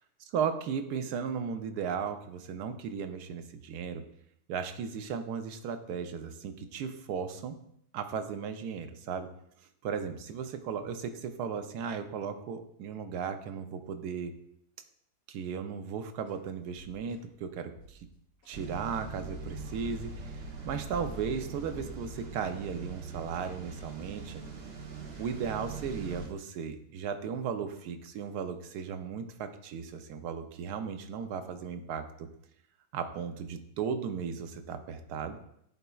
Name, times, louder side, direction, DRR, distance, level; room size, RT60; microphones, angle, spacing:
voice 1, 0.3-4.0 4.5-7.6 7.9-9.3 9.8-14.3 15.3-18.1 18.5-20.3 20.6-24.4 25.2-32.3 32.9-35.4, right 6 dB, 80° right, 8 dB, 1.1 m, -36 dB
sound 1, 16.3-16.4 16.8-17.3 17.8-18.6 18.9-19.1 19.4-20.0 20.4-21.3 21.6-21.8 22.1-23.9 24.2-24.5 24.8-25.3, right 1 dB, 65° left, 2.2 m, -57 dB
sound 2, 18.5-26.3, right 3 dB, 45° right, 0.9 m, -42 dB
10.5 x 4.0 x 2.3 m, 0.73 s
omnidirectional pair, 1.7 m